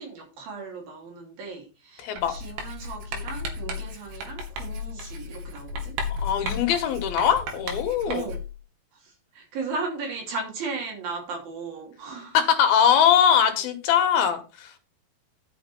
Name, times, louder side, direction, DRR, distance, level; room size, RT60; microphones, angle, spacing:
voice 1, 0.0-6.0 6.5-6.6 8.1-8.4 8.9-12.4 14.1-14.2, right 4 dB, 65° right, 0 dB, 4.7 m, -36 dB
voice 2, 2.0-2.3 6.2-8.2 12.3-14.7, left 8 dB, 75° left, 7 dB, 3.0 m, -21 dB
Writing, 2.2-8.6, left 2 dB, 85° right, 3.6 m, -34 dB
11.0 x 6.4 x 4.4 m, 0.31 s
omnidirectional pair, 4.6 m